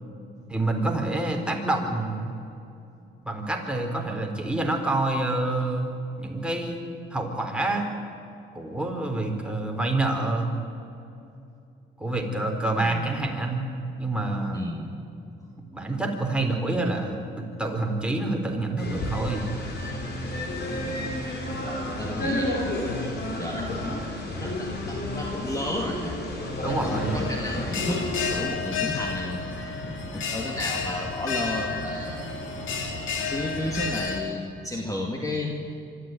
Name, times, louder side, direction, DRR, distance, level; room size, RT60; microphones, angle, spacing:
voice 1, 0.5-2.3 3.2-5.9 6.2-6.8 7.1-7.9 8.5-10.5 12.0-13.6 14.0-14.6 15.7-19.5 26.6-27.2, right 2 dB, 5° right, 1 dB, 3.9 m, -27 dB
voice 2, 12.8-13.1 14.5-14.9 20.8-21.0 21.7-22.6 23.4-26.1 26.6-29.4 30.1-32.2 33.3-35.6, left 1 dB, 15° left, 1 dB, 2.4 m, -33 dB
sound 1, 18.8-28.4, left 1 dB, 55° left, 5.2 m, -31 dB
Bell, 26.7-34.2, left 4 dB, 75° left, 3.0 m, -31 dB
25.0 x 13.0 x 9.3 m, 2.6 s
cardioid pair, 90°, 20 cm